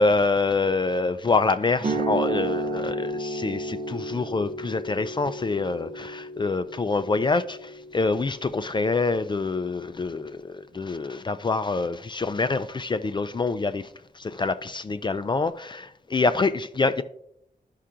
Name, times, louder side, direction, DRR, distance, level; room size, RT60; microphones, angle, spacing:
voice 1, 0.0-13.9 14.2-17.0, left 3 dB, 30° left, 0.4 m, -26 dB
sound 1, 1.8-9.8, right 2 dB, 60° right, 1.0 m, -33 dB
13.5 x 5.6 x 2.5 m
wide cardioid pair, 115°, 15 cm